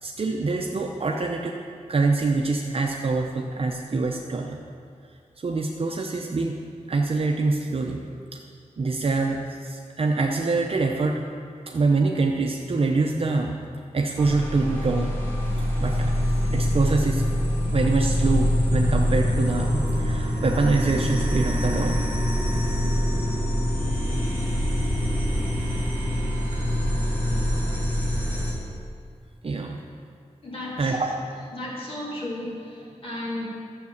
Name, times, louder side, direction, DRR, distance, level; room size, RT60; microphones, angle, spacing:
voice 1, 0.0-1.5 1.9-4.6 5.4-6.6 6.9-8.1 8.3-8.4 8.8-11.2 11.7-13.6 13.9-15.1 15.8-16.1 16.5-17.2 17.7-22.1 26.5-26.6 29.4-29.8 30.8-31.1, right 3 dB, 50° right, 1 dB, 0.8 m, -25 dB
sound 1, 14.2-28.5, equal, 15° left, 2.6 m, -24 dB
voice 2, 30.4-31.0 31.5-33.5, left 1 dB, 45° left, -6 dB, 3.2 m, -34 dB
12.5 x 7.5 x 7.1 m, 2.3 s
wide cardioid pair, 145°, 13 cm